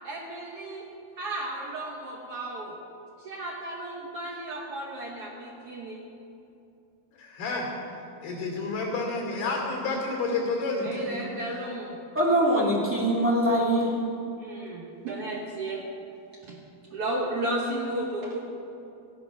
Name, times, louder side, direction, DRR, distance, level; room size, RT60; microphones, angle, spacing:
voice 1, 0.0-0.9 1.2-2.7 3.2-6.0 10.8-12.0 14.4-15.8 16.4-16.6 16.9-18.4, right 1 dB, 75° right, -2 dB, 1.3 m, -34 dB
voice 2, 7.2-7.7 8.2-11.2, left 3 dB, 85° left, -1 dB, 4.8 m, -30 dB
voice 3, 12.1-13.9, right 1 dB, 15° right, -6 dB, 0.5 m, -23 dB
14.5 x 9.9 x 5.9 m, 2.7 s
omnidirectional pair, 4.4 m